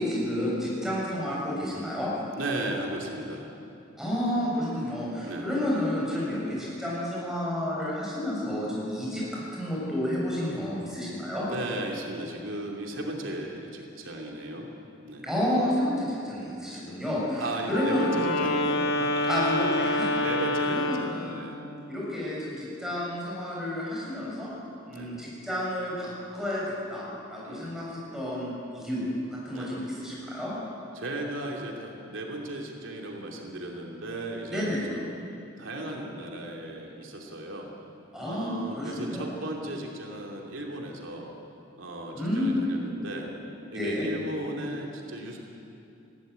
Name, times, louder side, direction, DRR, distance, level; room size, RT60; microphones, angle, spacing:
voice 1, 0.0-2.1 4.0-11.5 15.2-18.4 19.2-20.2 20.6-21.4 21.9-24.5 24.9-26.6 26.9-29.0 29.3-30.5 34.5-34.8 38.1-39.3 42.1-42.6 43.7-44.1, left 1 dB, ahead, -6 dB, 6.8 m, -30 dB
voice 2, 2.4-3.5 5.2-5.5 11.5-14.7 15.0-15.2 17.4-19.3 20.2-21.6 24.9-25.1 27.4-27.7 29.5-29.7 30.9-35.1 35.6-37.7 38.3-41.3 41.8-43.3 43.7-45.4, right 1 dB, 85° right, 0 dB, 2.8 m, -36 dB
Wind instrument woodwind instrument, 17.6-21.2, left 1 dB, 55° left, 2.7 m, -27 dB
21.0 x 16.0 x 9.4 m, 2.8 s
head